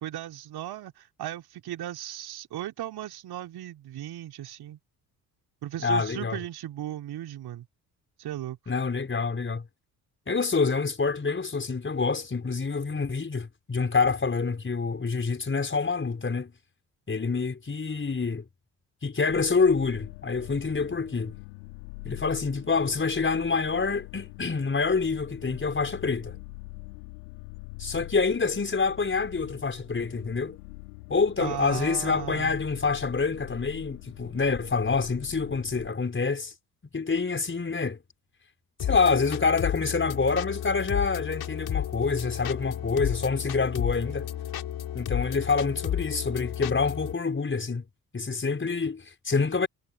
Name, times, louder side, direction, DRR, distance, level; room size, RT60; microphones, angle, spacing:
voice 1, 0.0-4.8 5.6-7.7 8.2-8.6 31.4-32.5, right 13 dB, 50° right, 3.8 m, -36 dB
voice 2, 5.8-6.4 8.7-9.6 10.3-16.5 17.1-18.4 19.0-21.3 22.0-26.4 27.8-30.6 31.1-36.5 36.9-38.0 38.8-44.3 44.9-47.8 48.1-49.7, left 4 dB, 25° left, 5.6 m, -27 dB
sound 1, 19.3-35.9, left 32 dB, 65° left, 2.6 m, -44 dB
sound 2, 38.8-47.1, left 11 dB, 50° left, 7.6 m, -32 dB
figure-of-eight pair, 45°, 47 cm